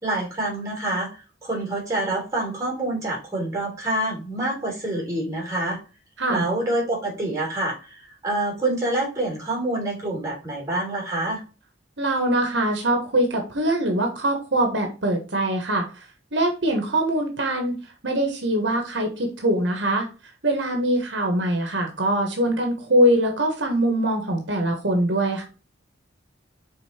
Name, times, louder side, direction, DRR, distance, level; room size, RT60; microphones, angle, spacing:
voice 1, 0.0-5.8 6.3-11.4, right 2 dB, 20° right, -2 dB, 3.5 m, -27 dB
voice 2, 12.0-15.8 16.3-17.7 18.0-20.1 20.4-25.4, right 1 dB, 70° right, 3 dB, 1.4 m, -23 dB
5.3 x 4.2 x 4.3 m, 0.33 s
head